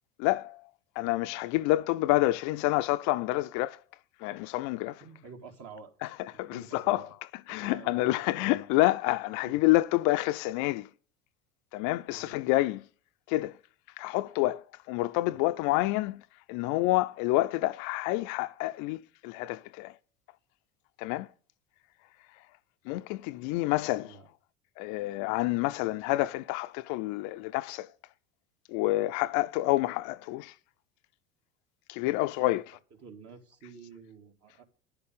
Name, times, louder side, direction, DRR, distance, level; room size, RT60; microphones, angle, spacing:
voice 1, 0.2-0.7 1.0-3.8 4.2-5.0 6.0-6.1 6.4-7.1 7.5-10.9 11.7-12.8 13.3-13.6 14.0-20.0 21.0-21.3 22.8-24.2 24.8-27.9 28.7-30.5 31.9-32.6, left 18 dB, 55° left, 0.6 m, -28 dB
voice 2, 5.0-5.9 6.3-7.1 7.5-8.6 9.4-9.6 12.1-12.4 15.2-15.4 24.0-24.3 32.4-32.6 33.0-34.6, right 5 dB, 40° right, 2.4 m, -49 dB
10.5 x 6.7 x 5.4 m
hypercardioid pair, 75°, 36 cm